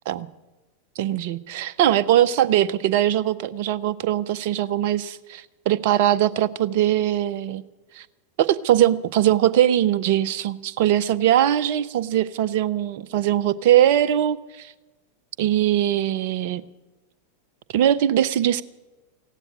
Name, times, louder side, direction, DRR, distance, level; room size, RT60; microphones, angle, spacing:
voice 1, 1.0-7.6 7.9-8.0 8.4-14.7 15.4-16.6 17.7-18.6, right 11 dB, 50° right, 15 dB, 0.6 m, -21 dB
15.5 x 9.1 x 9.8 m, 1.1 s
figure-of-eight pair, 90°, 0 cm